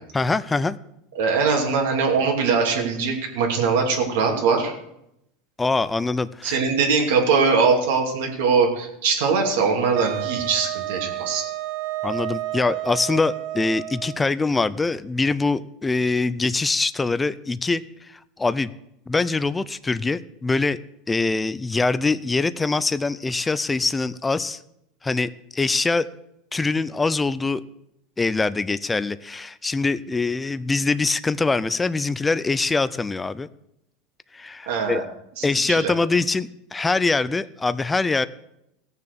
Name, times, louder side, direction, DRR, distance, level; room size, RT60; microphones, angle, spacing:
voice 1, 0.1-0.8 5.6-6.6 12.0-18.7 19.1-20.8 21.1-24.6 25.0-26.1 26.5-27.6 28.2-33.5 34.3-35.0 35.4-38.3, left 3 dB, 10° left, 15 dB, 0.4 m, -23 dB
voice 2, 1.1-4.7 6.4-11.4 34.7-35.0 35.4-35.9, right 5 dB, 80° right, 1 dB, 2.8 m, -21 dB
Wind instrument woodwind instrument, 10.0-14.3, right 16 dB, 60° right, 0.6 m, -31 dB
16.0 x 6.8 x 6.8 m, 0.81 s
supercardioid pair, 145°, 0 cm